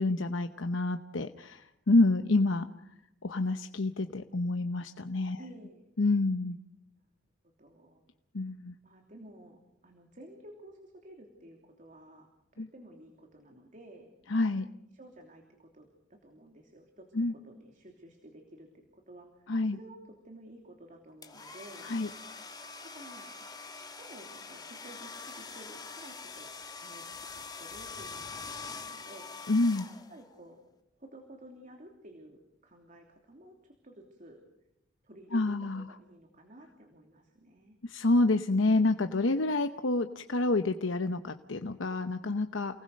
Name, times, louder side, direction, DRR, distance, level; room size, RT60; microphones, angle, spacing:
voice 1, 0.0-2.7 3.2-5.4 6.0-6.6 8.3-8.7 12.6-12.7 14.3-14.7 17.1-17.3 19.5-19.8 21.8-22.1 29.5-29.9 35.3-35.8 37.8-42.8, left 2 dB, 90° left, 8 dB, 0.9 m, -28 dB
voice 2, 5.4-5.9 7.0-7.1 7.6-8.0 8.8-12.3 12.5-14.1 14.9-15.9 16.2-21.9 22.8-23.3 23.8-26.5 26.8-29.3 30.1-30.6 31.0-34.4 35.0-37.8, right 1 dB, 45° right, 3 dB, 3.1 m, -53 dB
sound 1, 21.2-30.4, left 4 dB, 20° left, 1.7 m, -44 dB
29.5 x 19.5 x 6.6 m, 0.82 s
head